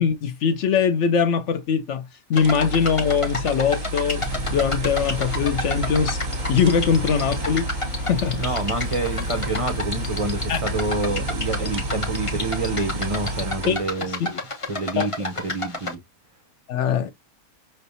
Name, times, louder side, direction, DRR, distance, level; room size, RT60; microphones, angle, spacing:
voice 1, 0.0-4.2 4.5-6.2 6.5-7.7 8.1-8.6 10.5-10.6 13.7-13.8 14.2-14.4 15.0-15.1 16.7-17.1, left 7 dB, 65° left, 0.7 m, -22 dB
sound 1, 2.3-15.9, left 2 dB, 25° left, 0.9 m, -31 dB
sound 2, 2.4-13.9, right 1 dB, 40° right, 0.7 m, -31 dB
sound 3, 4.2-14.0, equal, 85° left, 1.3 m, -33 dB
voice 2, 8.4-14.2 14.7-16.0, right 2 dB, 60° right, 0.3 m, -27 dB
5.7 x 3.3 x 2.6 m
omnidirectional pair, 1.6 m